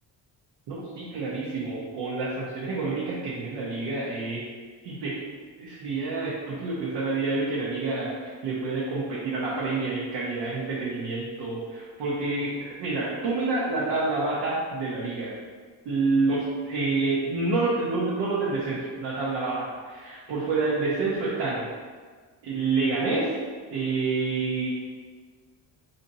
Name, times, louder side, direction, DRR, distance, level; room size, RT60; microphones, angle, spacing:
voice 1, 0.7-4.5 4.8-5.2 5.6-15.4 15.8-21.7 22.4-23.3 23.7-24.7, right 3 dB, 70° right, -7 dB, 0.8 m, -28 dB
4.2 x 2.7 x 2.6 m, 1.5 s
cardioid pair, 175°, 43 cm